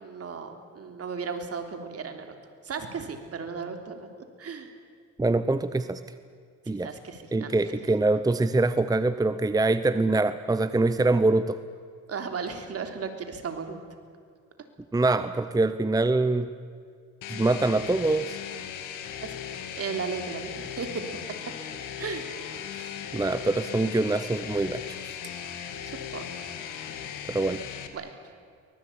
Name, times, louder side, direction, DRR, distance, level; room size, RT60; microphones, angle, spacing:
voice 1, 0.0-2.3 2.6-4.1 4.4-4.7 6.6-7.5 12.1-13.8 19.2-19.3 19.8-21.0 22.0-22.3 25.9-26.2 27.9-28.3, right 5 dB, 50° right, 6 dB, 3.3 m, -35 dB
voice 2, 5.2-6.0 6.7-6.9 7.3-11.6 14.9-16.5 17.3-18.4 22.7-25.1 27.3-27.6, right 2 dB, 10° right, 12 dB, 0.8 m, -24 dB
sound 1, 17.2-27.9, left 9 dB, 85° left, 2.3 m, -38 dB
23.5 x 20.5 x 8.7 m, 2.2 s
cardioid pair, 90°, 30 cm